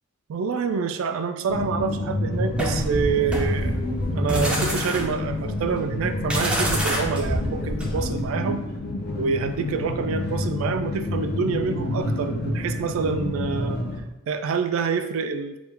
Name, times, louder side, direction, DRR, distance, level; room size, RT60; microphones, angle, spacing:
voice 1, 0.3-3.7 4.1-8.6 9.2-13.8 14.3-15.6, right 5 dB, 75° right, 9 dB, 0.3 m, -27 dB
sound 1, 1.5-14.0, left 1 dB, 50° left, 0.5 m, -28 dB
sound 2, 2.6-8.3, right 1 dB, 5° right, 0.4 m, -28 dB
3.5 x 2.3 x 4.3 m, 0.95 s
head